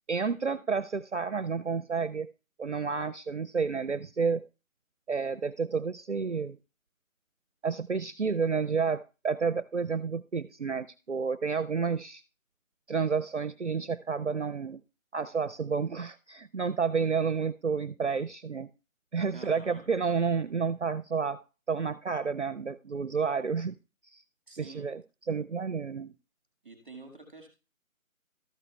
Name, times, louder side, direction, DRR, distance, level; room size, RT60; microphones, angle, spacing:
voice 1, 0.1-2.3 2.6-4.4 5.1-6.6 7.6-12.2 12.9-14.8 15.1-18.7 19.1-21.4 21.7-23.8 24.1-24.2 24.5-25.0 25.3-26.1, right 5 dB, 55° right, 17 dB, 0.5 m, -30 dB
voice 2, 19.3-19.8 20.4-20.5 24.5-24.9 26.6-27.5, right 3 dB, 10° right, 5 dB, 1.5 m, -48 dB
13.0 x 11.0 x 2.3 m, 0.31 s
figure-of-eight pair, 175°, 41 cm